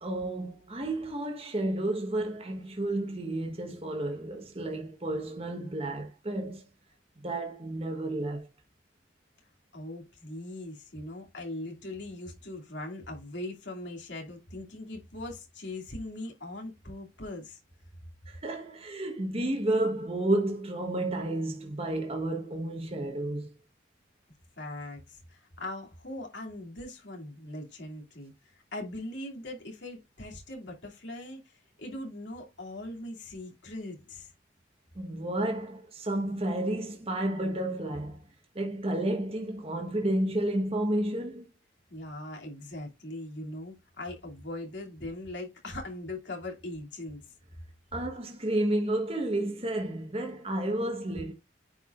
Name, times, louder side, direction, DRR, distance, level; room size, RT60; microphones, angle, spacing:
voice 1, 0.0-6.6 7.2-8.5 18.3-23.5 34.9-38.2 38.5-41.5 47.9-51.3, right 1 dB, 30° right, 1.1 m, -31 dB
voice 2, 9.7-17.6 24.6-34.3 41.9-47.3, left 1 dB, 65° left, 2.7 m, -40 dB
9.6 x 4.7 x 2.5 m
head